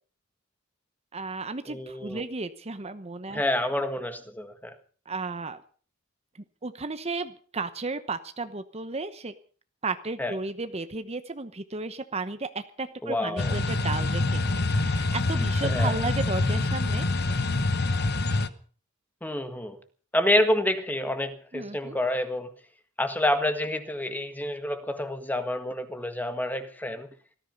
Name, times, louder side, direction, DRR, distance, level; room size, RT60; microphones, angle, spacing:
voice 1, 1.1-3.4 5.1-5.6 6.6-9.3 9.8-17.5 21.5-21.9, right 3 dB, 30° right, 10 dB, 1.0 m, -34 dB
voice 2, 1.7-2.2 3.3-4.7 10.2-10.4 13.0-13.6 15.6-16.0 19.2-19.8 20.1-22.5 23.0-27.1, left 1 dB, 10° left, 9 dB, 1.7 m, -28 dB
sound 1, 13.4-18.5, left 2 dB, 55° left, 1.1 m, -26 dB
18.5 x 14.0 x 5.4 m, 0.43 s
head